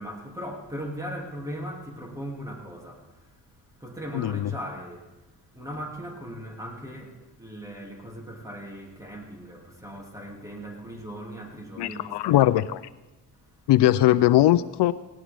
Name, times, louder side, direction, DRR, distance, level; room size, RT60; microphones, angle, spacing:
voice 1, 0.0-3.1 3.8-5.1 5.5-12.5, equal, 10° right, 2.8 m, -38 dB
voice 2, 4.1-4.5 11.8-12.8 13.7-14.9, left 14 dB, 80° left, 0.6 m, -20 dB
18.5 x 17.5 x 3.6 m
cardioid pair, 120°, 40 cm